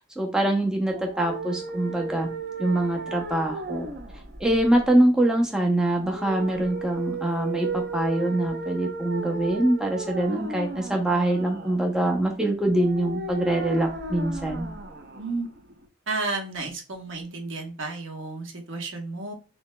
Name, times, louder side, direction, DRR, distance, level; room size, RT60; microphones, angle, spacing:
voice 1, 0.2-2.3 2.6-3.9 4.4-14.7, right 1 dB, 5° right, 1 dB, 0.6 m, -24 dB
sound 1, 0.9-15.9, right 3 dB, 50° right, 0.7 m, -35 dB
voice 2, 15.1-15.5 16.1-19.3, right 3 dB, 70° right, 2 dB, 1.1 m, -32 dB
6.7 x 2.9 x 2.2 m, 0.35 s
head